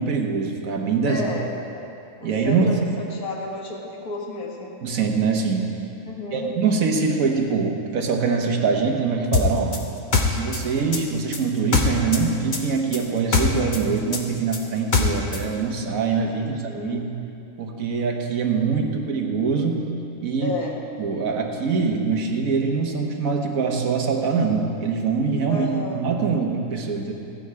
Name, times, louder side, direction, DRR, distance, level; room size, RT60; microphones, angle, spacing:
voice 1, 0.0-1.3 2.2-2.7 4.8-5.7 6.3-9.8 10.3-17.0 17.6-19.9 20.2-20.5 21.0-25.7 25.9-27.1, right 5 dB, 60° right, 1 dB, 1.6 m, -23 dB
voice 2, 1.0-2.0 2.2-4.8 6.1-6.5 16.3-17.0 20.4-20.8 25.5-26.0, left 3 dB, 65° left, -1 dB, 2.1 m, -32 dB
sound 1, 9.3-12.2 12.5-15.4, left 4 dB, 35° left, 0.9 m, -22 dB
14.5 x 9.7 x 4.7 m, 2.7 s
omnidirectional pair, 1.7 m